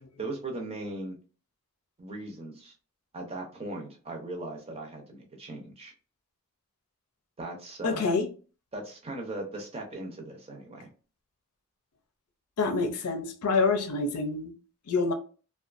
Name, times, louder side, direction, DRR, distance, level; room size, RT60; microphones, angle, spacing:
voice 1, 0.2-1.2 2.0-2.7 3.1-5.9 7.4-8.1 8.7-10.9, right 2 dB, 25° right, 0.6 m, -38 dB
voice 2, 7.8-8.2 12.6-14.5 14.9-15.1, left 4 dB, 85° left, 0.5 m, -26 dB
2.5 x 2.3 x 2.4 m
head